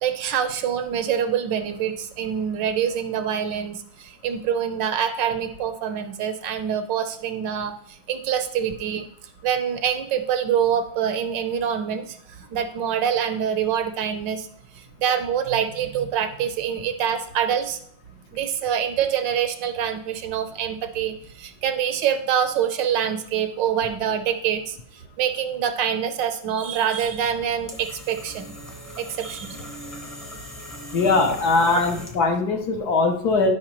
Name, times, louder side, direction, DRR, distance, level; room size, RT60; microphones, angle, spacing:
voice 1, 0.0-9.1 9.4-12.2 12.5-14.5 14.7-17.8 18.3-24.8 25.2-28.5 29.0-29.7, right 8 dB, 75° right, 9 dB, 1.3 m, -25 dB
sound 1, 27.0-32.4, equal, 10° left, 0.7 m, -40 dB
voice 2, 30.9-33.5, left 3 dB, 60° left, 4 dB, 1.2 m, -21 dB
12.5 x 5.4 x 3.0 m, 0.64 s
omnidirectional pair, 2.1 m